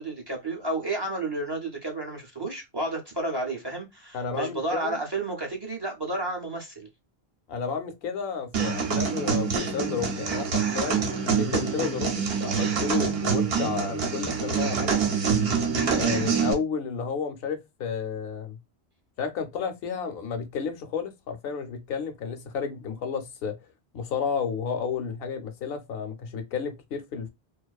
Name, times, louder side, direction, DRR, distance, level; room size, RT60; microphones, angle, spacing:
voice 1, 0.0-6.9 16.0-16.3, right 2 dB, 35° right, 0.4 m, -31 dB
voice 2, 4.1-5.0 7.5-15.1 15.9-18.6 19.2-23.6 23.9-27.3, left 6 dB, 70° left, 0.7 m, -32 dB
sound 1, 8.5-16.5, right 6 dB, 70° right, 0.8 m, -26 dB
2.5 x 2.3 x 2.3 m
omnidirectional pair, 1.1 m